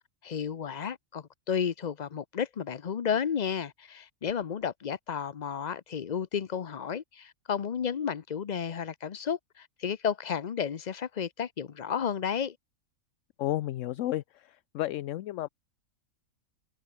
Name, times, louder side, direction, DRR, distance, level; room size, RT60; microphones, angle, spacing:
voice 1, 0.2-12.6, left 7 dB, 45° left, 0.6 m, -32 dB
voice 2, 13.4-15.5, left 14 dB, 70° left, 0.9 m, -32 dB
omnidirectional pair, 1.4 m